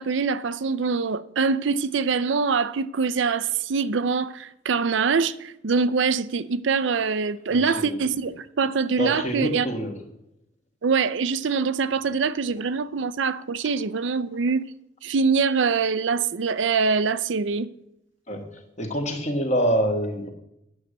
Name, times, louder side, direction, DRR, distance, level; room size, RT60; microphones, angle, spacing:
voice 1, 0.0-9.7 10.8-14.6 15.0-17.7, right 5 dB, 75° right, 0.5 m, -24 dB
voice 2, 7.5-8.0 9.0-9.9 18.3-18.4 18.8-20.3, equal, 35° left, 1.7 m, -26 dB
9.4 x 6.5 x 8.0 m
head